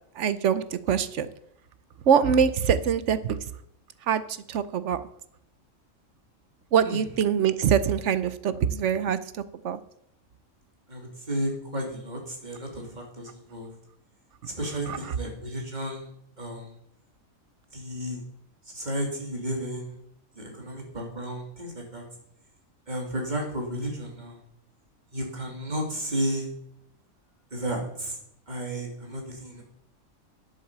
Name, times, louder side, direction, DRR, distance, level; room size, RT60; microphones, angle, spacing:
voice 1, 0.2-1.3 2.1-3.4 4.1-4.2 4.5-5.1 6.7-9.2 9.6-9.8 14.9-15.0, right 7 dB, 65° right, 14 dB, 1.0 m, -23 dB
voice 2, 10.9-13.7 14.5-16.1 16.4-16.7 17.7-18.2 18.7-20.0 20.3-22.0 22.9-24.4 25.1-26.5 27.5-28.2 28.5-29.6, right 1 dB, 35° right, 0 dB, 3.0 m, -33 dB
10.5 x 8.1 x 7.4 m, 0.71 s
omnidirectional pair, 1.4 m